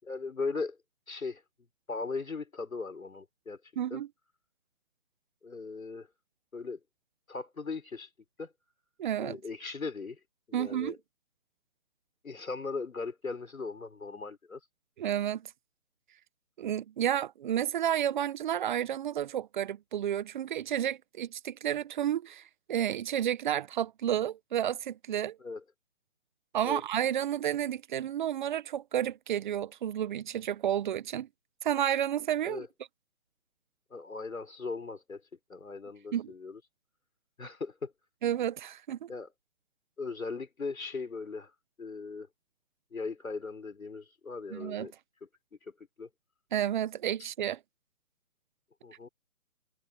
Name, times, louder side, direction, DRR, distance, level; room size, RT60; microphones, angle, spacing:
voice 1, 0.1-0.8 1.1-1.4 1.9-3.6 3.9-4.0 5.4-6.1 6.5-6.8 7.3-8.1 8.4-8.5 9.2-10.2 10.5-11.0 12.2-14.6 25.4-25.6 26.6-26.8 32.4-32.7 33.9-35.2 35.5-36.6 37.4-37.9 39.1-39.3 40.0-41.5 41.8-42.3 42.9-44.9 45.7-46.1 48.8-49.1, left 4 dB, 85° left, 4.1 m, -38 dB
voice 2, 3.8-4.1 9.0-9.4 10.5-11.0 15.0-15.5 16.6-22.4 22.7-25.4 26.5-31.3 31.6-32.7 36.1-36.3 38.2-39.1 44.5-44.9 46.5-47.6, right 10 dB, 35° right, 1.3 m, -31 dB
figure-of-eight pair, 145°, 40 cm